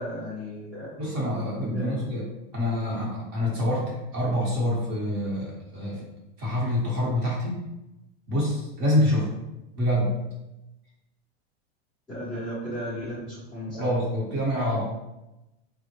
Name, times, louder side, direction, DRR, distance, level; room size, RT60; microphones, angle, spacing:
voice 1, 0.0-0.9 1.7-2.0 12.1-13.9, equal, ahead, -14 dB, 0.4 m, -34 dB
voice 2, 1.0-2.2 2.5-6.1 6.4-7.6 8.3-9.3 9.8-10.1 13.7-14.8, left 1 dB, 30° right, -4 dB, 1.1 m, -26 dB
3.7 x 2.1 x 2.9 m, 0.96 s
supercardioid pair, 170°, 33 cm